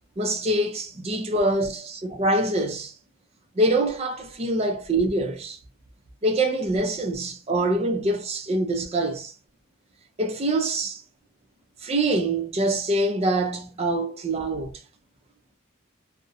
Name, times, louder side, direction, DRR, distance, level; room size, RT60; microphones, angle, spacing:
voice 1, 0.2-2.9 3.6-5.6 6.2-9.3 10.2-11.0 11.8-14.8, right 1 dB, 30° right, 0.4 m, -25 dB
2.4 x 2.0 x 2.5 m
head